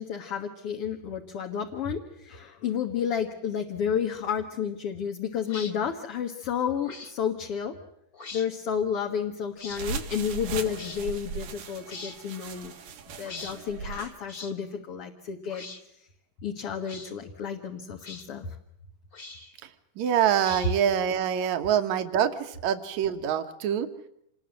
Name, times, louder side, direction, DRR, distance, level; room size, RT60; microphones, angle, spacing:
voice 1, 0.0-7.8 8.3-12.7 13.2-15.6 16.4-18.5, left 7 dB, 50° left, 2 dB, 2.2 m, -31 dB
sound 1, 5.5-5.7 6.8-7.1 8.1-8.5 9.6-9.8 10.7-11.0 11.9-12.2 13.2-13.6 14.3-14.5 15.5-15.8 16.8-17.1 18.0-18.3 19.1-19.6 20.4-20.9, left 4 dB, 30° left, 2.5 m, -42 dB
sound 2, 9.7-14.2, right 5 dB, 90° right, 3.7 m, -38 dB
voice 2, 20.0-23.9, right 9 dB, 65° right, 8 dB, 2.7 m, -25 dB
27.5 x 20.5 x 7.7 m, 0.75 s
omnidirectional pair, 3.7 m